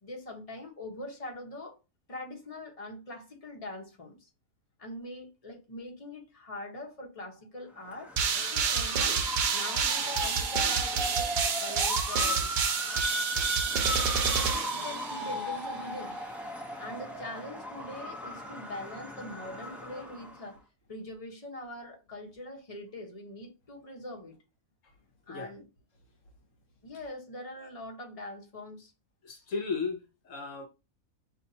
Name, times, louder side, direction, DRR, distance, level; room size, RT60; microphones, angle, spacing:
voice 1, 0.0-1.8 2.1-4.3 4.8-8.1 8.5-9.2 9.5-12.6 13.6-13.9 14.7-16.2 16.8-20.6 20.9-24.3 25.3-25.6 26.8-28.9, left 1 dB, 30° left, 1.0 m, -43 dB
Motor vehicle (road) / Siren, 7.8-20.5, equal, ahead, 0.3 m, -37 dB
sound 1, 8.2-15.4, right 5 dB, 80° right, 0.4 m, -29 dB
voice 2, 29.2-30.7, left 4 dB, 65° left, 1.0 m, -35 dB
5.3 x 2.7 x 2.7 m
omnidirectional pair, 1.5 m